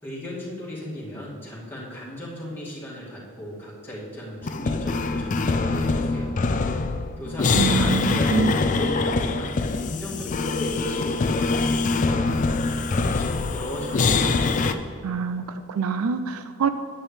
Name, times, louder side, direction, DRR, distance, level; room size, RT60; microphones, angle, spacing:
voice 1, 0.0-6.5 7.2-9.6 9.8-14.3, left 1 dB, 10° left, -7 dB, 2.1 m, -36 dB
sound 1, 4.4-14.7, left 3 dB, 35° left, 0.4 m, -24 dB
voice 2, 7.5-8.6 15.0-16.7, right 5 dB, 85° right, 10 dB, 0.4 m, -25 dB
9.4 x 9.3 x 3.2 m, 2.4 s
head